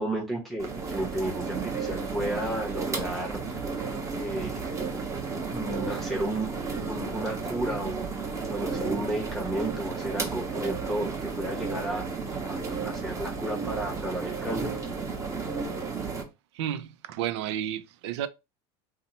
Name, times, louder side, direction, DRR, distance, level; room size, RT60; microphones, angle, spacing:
voice 1, 0.0-3.6 4.1-4.6 5.4-6.6 6.8-8.1 8.5-12.1 12.4-14.7, right 1 dB, ahead, 0.8 m, -33 dB
sound 1, 0.6-16.2, right 4 dB, 20° right, 0.8 m, -33 dB
voice 2, 16.6-18.3, right 10 dB, 85° right, 0.4 m, -31 dB
2.8 x 2.1 x 4.1 m
supercardioid pair, 115°, 14 cm